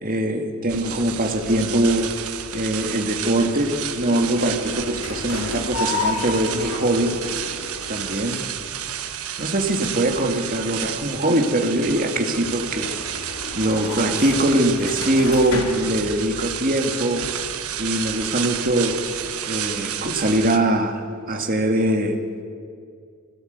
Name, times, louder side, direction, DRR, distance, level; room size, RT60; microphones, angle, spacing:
voice 1, 0.0-2.1 2.5-7.2 7.9-8.4 9.4-13.0 13.6-17.3 17.8-19.0 19.5-22.2, right 1 dB, 40° right, 3 dB, 2.1 m, -22 dB
sound 1, 0.7-20.6, right 10 dB, 80° right, 1.3 m, -31 dB
sound 2, 1.3-18.4, left 3 dB, 80° left, 2.3 m, -34 dB
21.5 x 17.0 x 8.2 m, 2.2 s
head